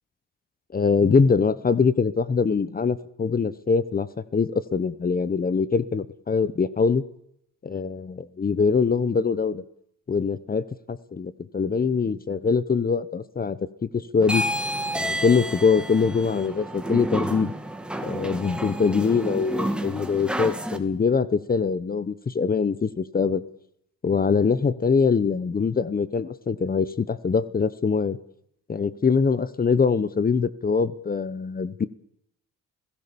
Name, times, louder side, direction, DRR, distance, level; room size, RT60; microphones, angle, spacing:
voice 1, 0.7-4.1 4.3-7.0 7.6-9.6 10.1-14.4 14.9-17.5 18.0-23.4 24.0-28.2 28.7-31.9, left 5 dB, 30° left, 16 dB, 1.0 m, -23 dB
sound 1, 14.2-20.8, equal, 5° right, 2.5 m, -30 dB
29.0 x 17.0 x 7.0 m, 0.76 s
cardioid pair, 90°, 30 cm